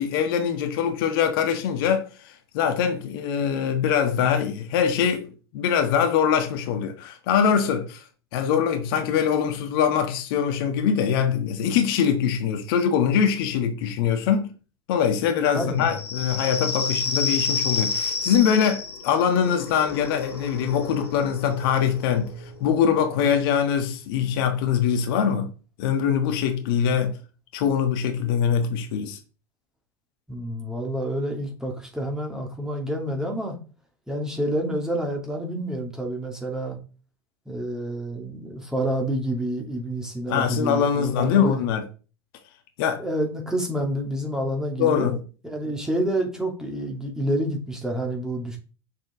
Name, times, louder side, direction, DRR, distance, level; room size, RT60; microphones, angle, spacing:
voice 1, 0.0-8.0 8.3-14.5 14.9-22.3 22.6-25.5 25.8-27.1 27.5-29.2 40.3-41.8 42.8-43.0 44.8-45.2, left 8 dB, 60° left, 1.4 m, -23 dB
voice 2, 15.5-16.0 30.3-33.6 34.1-36.8 37.5-41.6 43.0-45.2 45.4-48.6, right 1 dB, 5° right, 2.6 m, -28 dB
sound 1, 15.8-23.1, left 4 dB, 80° left, 1.9 m, -30 dB
6.7 x 6.1 x 3.7 m
figure-of-eight pair, 80°, 14 cm